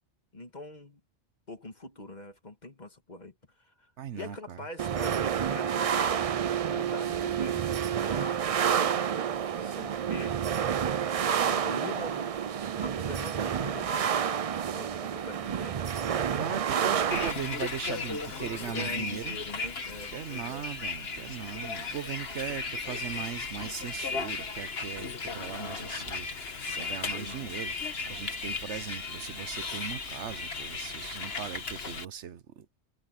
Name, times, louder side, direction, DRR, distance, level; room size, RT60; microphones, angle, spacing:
voice 1, 0.3-1.0 1.5-6.3 6.7-10.4 11.2-12.3 12.8-14.5 14.7-15.8 18.6-20.7 27.1-27.5, left 2 dB, 40° left, 1.9 m, -43 dB
voice 2, 4.0-4.6 16.4-19.4 20.1-32.8, right 8 dB, 80° right, 1.2 m, -39 dB
sound 1, 4.8-17.3, right 8 dB, 50° right, 0.4 m, -29 dB
Bus, 17.1-32.1, left 4 dB, 60° left, 1.8 m, -36 dB
omnidirectional pair, 1.2 m